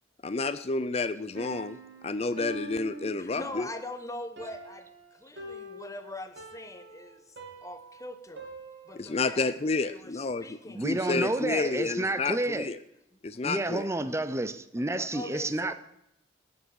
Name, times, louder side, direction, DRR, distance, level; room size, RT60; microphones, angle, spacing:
voice 1, 0.2-1.8 2.0-3.7 8.9-12.8 13.2-13.9, left 3 dB, 35° left, 0.5 m, -30 dB
Piano, 1.4-9.2, right 2 dB, 75° right, 2.6 m, -45 dB
voice 2, 3.2-7.4 7.6-8.5 8.9-9.5 9.9-10.8 14.8-15.7, left 1 dB, 20° left, 0.9 m, -42 dB
voice 3, 10.7-12.7 13.4-15.7, right 2 dB, 15° right, 0.6 m, -30 dB
18.0 x 6.2 x 7.0 m
head